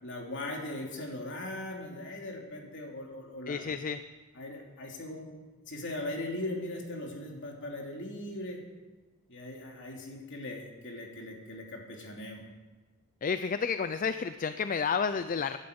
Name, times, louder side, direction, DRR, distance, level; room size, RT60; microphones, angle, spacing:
voice 1, 0.0-3.6 4.3-5.3 5.7-8.6 9.3-12.4, left 1 dB, 60° left, 0 dB, 3.1 m, -39 dB
voice 2, 3.5-4.0 13.2-15.6, left 6 dB, 40° left, 11 dB, 0.4 m, -31 dB
16.5 x 11.5 x 5.3 m, 1.3 s
head